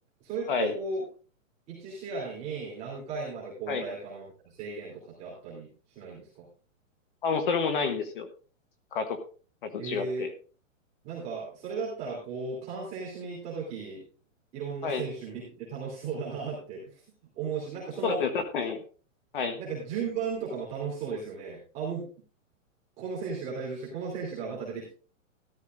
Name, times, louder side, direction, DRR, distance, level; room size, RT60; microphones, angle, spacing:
voice 1, 0.2-1.0 1.7-6.4 9.8-10.3 11.0-14.0 14.5-17.0 17.3-18.2 19.6-22.1 23.0-24.9, right 5 dB, 15° right, -5 dB, 3.0 m, -35 dB
voice 2, 7.2-8.3 8.9-9.2 9.6-10.3 14.8-15.0 18.0-18.8 19.3-19.6, left 5 dB, 40° left, 8 dB, 1.2 m, -29 dB
13.5 x 12.5 x 2.5 m, 0.38 s
hypercardioid pair, 175°, 40 cm